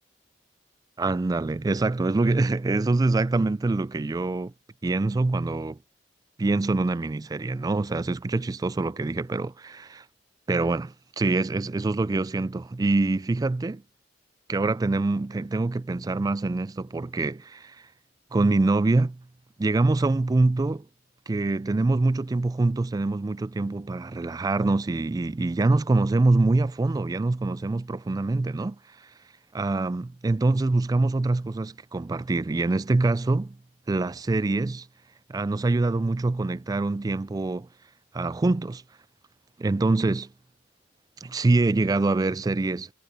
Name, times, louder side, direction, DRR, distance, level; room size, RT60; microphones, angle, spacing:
voice 1, 1.0-4.5 4.8-5.8 6.4-10.0 10.5-13.8 14.5-17.8 18.3-19.2 19.6-20.9 21.3-28.8 29.5-33.6 33.9-34.9 35.3-37.7 38.1-38.8 39.6-40.3 41.2-42.9, right 2 dB, 20° right, 0.3 m, -25 dB
head